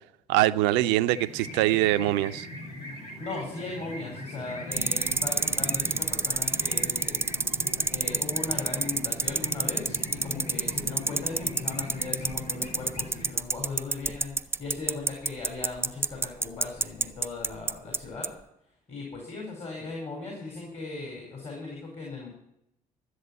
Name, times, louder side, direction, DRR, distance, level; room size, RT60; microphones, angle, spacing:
voice 1, 0.3-2.5, right 15 dB, 65° right, 14 dB, 0.6 m, -23 dB
sound 1, 1.1-13.3, left 1 dB, 85° left, 2.1 m, -40 dB
voice 2, 3.2-7.2 7.9-18.3 18.9-22.3, left 3 dB, 35° left, -1 dB, 4.5 m, -38 dB
sound 2, 4.7-18.0 18.2-18.3, right 3 dB, 10° right, 0.5 m, -26 dB
13.0 x 8.0 x 8.8 m, 0.78 s
figure-of-eight pair, 50°, 19 cm